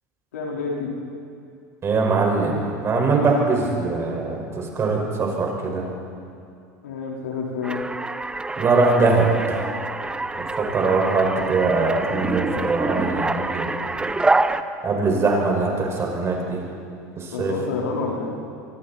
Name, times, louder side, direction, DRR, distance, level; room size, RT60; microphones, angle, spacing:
voice 1, 0.3-1.0 6.8-7.8 17.3-18.4, left 4 dB, 85° left, -3 dB, 4.6 m, -28 dB
voice 2, 1.8-5.9 8.6-9.9 10.3-13.8 14.8-16.6 17.2-17.6, right 3 dB, 30° right, 0 dB, 5.8 m, -22 dB
sound 1, 7.6-14.6, right 2 dB, 10° right, 0.9 m, -26 dB
25.0 x 24.5 x 4.5 m, 2.5 s
hypercardioid pair, 95°, 9 cm